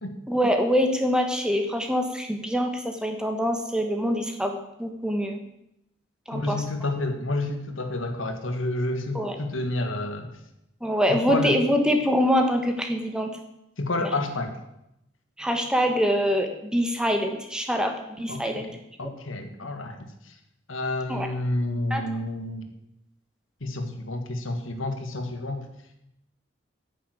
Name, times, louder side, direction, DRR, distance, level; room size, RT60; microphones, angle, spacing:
voice 1, 0.3-5.4 6.3-6.6 9.1-9.4 10.8-13.3 14.0-14.1 15.4-18.7 21.1-21.3 21.9-22.0, equal, 5° right, 4 dB, 1.2 m, -24 dB
voice 2, 6.3-10.3 11.1-11.6 13.8-14.6 18.3-18.4 19.0-20.3 20.7-22.7 23.6-25.6, left 2 dB, 85° left, 6 dB, 1.7 m, -29 dB
9.4 x 7.1 x 9.1 m, 0.84 s
head